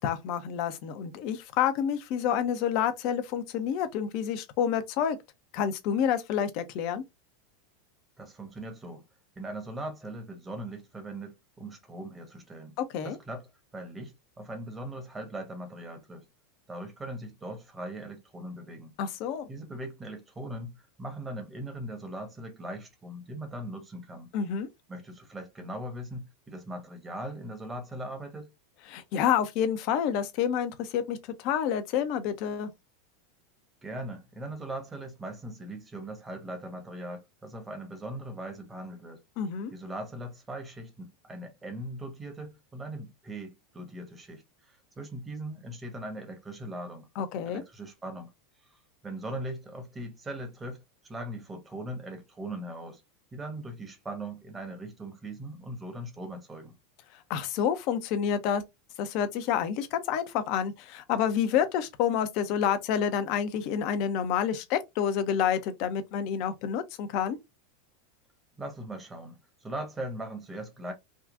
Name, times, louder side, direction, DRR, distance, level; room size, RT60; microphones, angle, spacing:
voice 1, 0.0-5.2 5.5-7.0 12.9-13.2 19.0-19.5 24.3-24.7 28.9-32.7 39.4-39.7 47.2-47.6 57.3-58.6 59.0-67.4, left 8 dB, 50° left, 0.6 m, -28 dB
voice 2, 8.2-9.0 9.4-12.8 13.0-13.5 13.7-16.2 16.7-18.9 19.5-20.7 21.0-24.3 24.9-28.5 33.8-39.2 39.7-47.1 47.4-48.3 49.0-53.0 53.3-56.7 68.6-70.9, right 1 dB, 20° right, 1.1 m, -40 dB
3.6 x 2.3 x 2.5 m
figure-of-eight pair, 90°, 0 cm